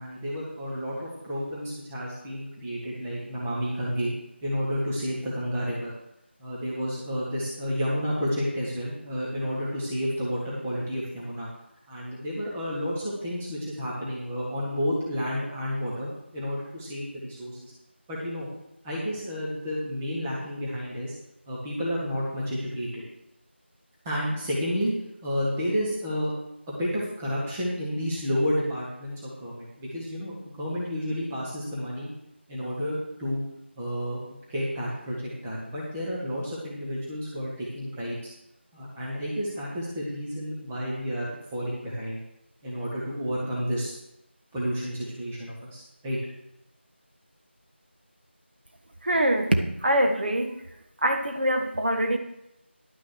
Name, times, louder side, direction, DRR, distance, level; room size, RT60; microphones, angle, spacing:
voice 1, 0.0-4.1 4.4-5.9 6.4-11.5 11.9-17.7 18.1-18.5 18.8-21.1 21.5-23.0 24.0-24.9 25.2-26.3 26.7-32.1 32.5-33.4 33.8-34.2 34.5-38.3 38.7-42.2 42.6-43.9 44.5-46.2, equal, 5° right, -7 dB, 1.1 m, -31 dB
voice 2, 49.0-50.7 51.0-52.2, right 1 dB, 55° right, 4 dB, 1.5 m, -24 dB
11.0 x 6.2 x 6.4 m, 0.84 s
figure-of-eight pair, 175°, 6 cm